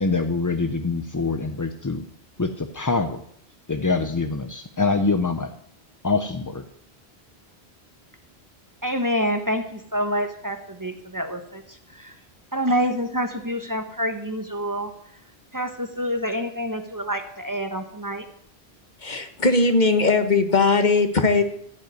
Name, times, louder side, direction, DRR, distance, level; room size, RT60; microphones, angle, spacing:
voice 1, 0.0-2.0 2.4-3.2 3.7-5.5 6.0-6.6, left 3 dB, 25° left, 7 dB, 0.4 m, -24 dB
voice 2, 8.8-11.6 12.0-12.1 12.5-14.9 15.5-18.2, equal, 20° right, 6 dB, 1.2 m, -27 dB
voice 3, 19.0-21.4, left 3 dB, 45° left, 7 dB, 1.2 m, -19 dB
14.5 x 5.5 x 9.4 m, 0.69 s
omnidirectional pair, 1.1 m